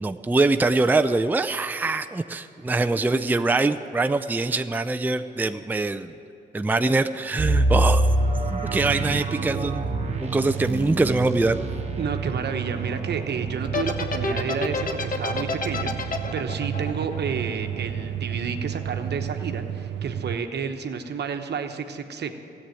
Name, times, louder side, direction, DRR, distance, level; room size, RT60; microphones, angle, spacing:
voice 1, 0.0-6.1 6.5-8.1 8.5-9.8 10.2-11.5, right 3 dB, 10° right, 9 dB, 0.4 m, -23 dB
sound 1, 7.4-17.1 17.5-17.6 18.1-18.3, right 1 dB, 35° right, 1.3 m, -28 dB
sound 2, 7.4-20.4, right 9 dB, 80° right, 0.5 m, -32 dB
voice 2, 12.0-22.4, right 5 dB, 65° right, 6 dB, 1.0 m, -31 dB
sound 3, 13.6-18.0, left 4 dB, 50° left, 1.1 m, -29 dB
14.0 x 8.4 x 9.1 m, 2.8 s
cardioid pair, 70°, 19 cm